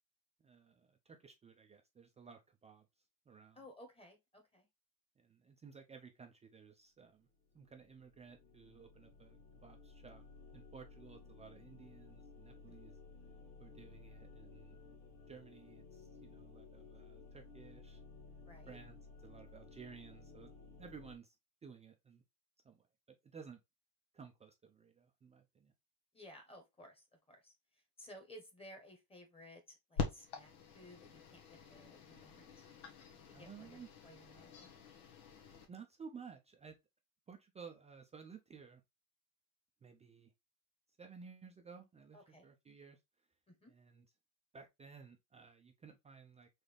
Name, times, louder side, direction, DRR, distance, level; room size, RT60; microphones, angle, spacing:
voice 1, 0.4-2.9 3.3-3.6 5.2-7.3 7.5-10.2 10.5-13.0 13.6-14.8 15.3-18.0 18.7-20.5 20.8-21.4 21.6-22.2 22.6-23.6 24.1-25.7 33.3-33.9 35.7-36.8 37.3-38.8 39.8-40.3 41.0-43.0 43.7-44.1 44.5-46.5, right 6 dB, 15° right, 0.4 m, -56 dB
voice 2, 3.5-4.7 12.7-12.8 18.4-18.8 26.1-27.5 28.0-32.5 33.3-34.7 42.1-42.5 43.5-43.7, left 1 dB, 15° left, 1.2 m, -57 dB
sound 1, 7.3-21.2, left 4 dB, 45° left, 1.8 m, -57 dB
sound 2, 30.0-35.7, left 5 dB, 90° left, 1.5 m, -45 dB
4.0 x 3.4 x 3.3 m
cardioid pair, 135°, 41 cm